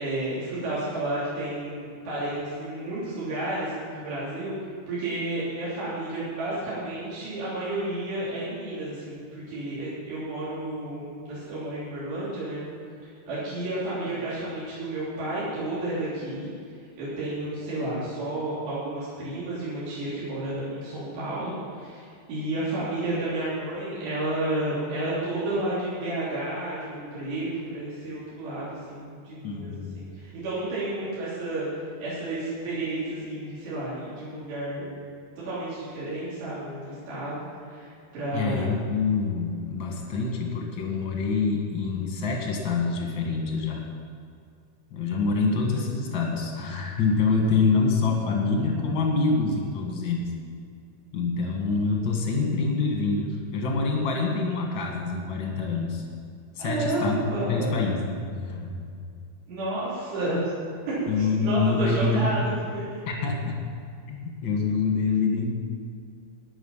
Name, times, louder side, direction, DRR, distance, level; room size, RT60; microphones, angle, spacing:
voice 1, 0.0-4.6 4.9-12.6 13.3-16.5 16.7-31.7 32.0-34.9 35.4-38.7 56.6-57.8 59.5-60.5 60.9-62.8, right 2 dB, 75° right, -10 dB, 5.3 m, -31 dB
voice 2, 29.4-30.0 38.3-43.8 44.9-50.3 51.1-56.0 56.6-59.0 61.1-62.3 63.1-63.6 64.1-65.5, left 4 dB, 50° left, 0 dB, 1.5 m, -26 dB
20.0 x 6.9 x 5.7 m, 2.3 s
omnidirectional pair, 5.0 m